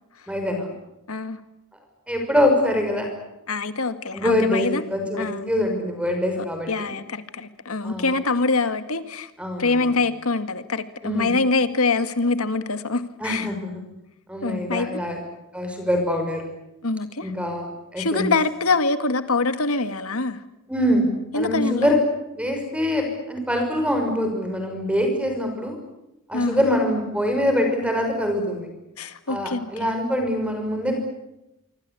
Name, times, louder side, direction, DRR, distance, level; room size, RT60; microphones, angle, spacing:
voice 1, 0.3-0.7 2.1-3.1 4.1-6.9 7.8-8.1 9.4-9.9 11.0-11.3 13.2-13.8 14.3-15.2 15.5-16.4 17.2-18.3 20.7-21.1 21.3-22.0 22.4-25.8 26.3-28.7 29.3-31.0, left 1 dB, 5° right, 4 dB, 5.8 m, -24 dB
voice 2, 1.1-1.4 3.5-4.8 5.1-5.5 6.4-9.3 9.6-13.5 14.4-15.0 16.8-17.3 18.0-20.4 21.3-22.0 26.3-26.7 29.0-29.9, left 3 dB, 80° left, 10 dB, 2.0 m, -24 dB
26.0 x 25.0 x 8.5 m, 0.92 s
head